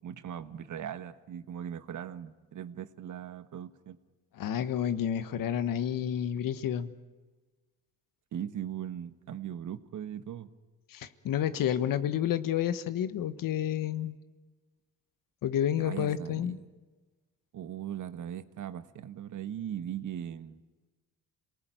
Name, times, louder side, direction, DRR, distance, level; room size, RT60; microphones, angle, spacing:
voice 1, 0.0-4.0 8.3-10.5 15.8-16.6 17.5-20.6, right 10 dB, 60° right, 11 dB, 1.4 m, -39 dB
voice 2, 4.4-6.9 10.9-14.2 15.4-16.6, left 10 dB, 70° left, 12 dB, 1.4 m, -30 dB
27.0 x 19.0 x 9.3 m, 1.3 s
cardioid pair, 75°, 34 cm